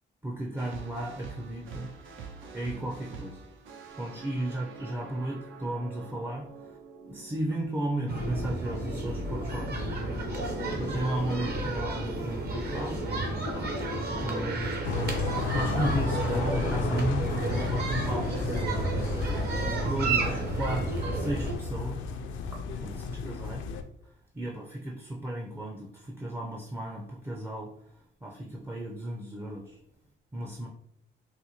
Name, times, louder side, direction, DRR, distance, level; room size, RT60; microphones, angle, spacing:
voice 1, 0.2-1.9 2.5-3.4 4.0-6.8 7.1-10.5 10.8-13.0 13.5-19.0 19.2-19.4 19.6-22.1 22.5-23.6 24.3-27.7 28.2-29.8 30.3-30.7, right 1 dB, 10° right, -1 dB, 0.4 m, -35 dB
sound 1, 0.6-8.7, right 5 dB, 75° right, 0.5 m, -46 dB
sound 2, 8.1-21.6, right 2 dB, 55° right, 0.8 m, -31 dB
sound 3, 14.8-23.8, left 4 dB, 75° left, 0.4 m, -33 dB
4.1 x 2.1 x 2.8 m, 0.74 s
cardioid pair, 90°, 20 cm